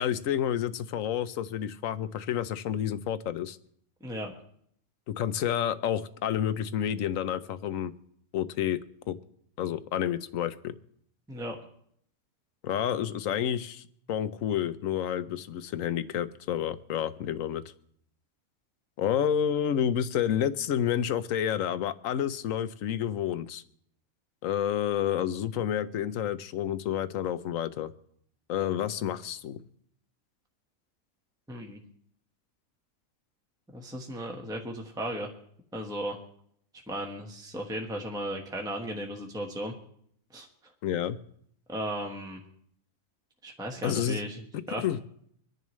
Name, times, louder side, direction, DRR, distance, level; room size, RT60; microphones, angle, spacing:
voice 1, 0.0-3.6 5.1-7.9 8.3-8.8 9.1-9.2 9.6-10.7 12.6-17.6 19.0-23.6 24.4-27.9 28.5-29.6 40.8-41.2 43.8-44.2 44.8-45.0, left 9 dB, 70° left, 13 dB, 1.1 m, -29 dB
voice 2, 4.0-4.3 11.3-11.6 31.5-31.8 33.7-35.3 35.7-36.2 36.9-39.7 40.3-40.5 41.7-42.4 43.4-44.4 44.7-44.8, equal, 5° right, 1 dB, 1.3 m, -35 dB
25.0 x 10.5 x 3.1 m, 0.68 s
omnidirectional pair, 1.5 m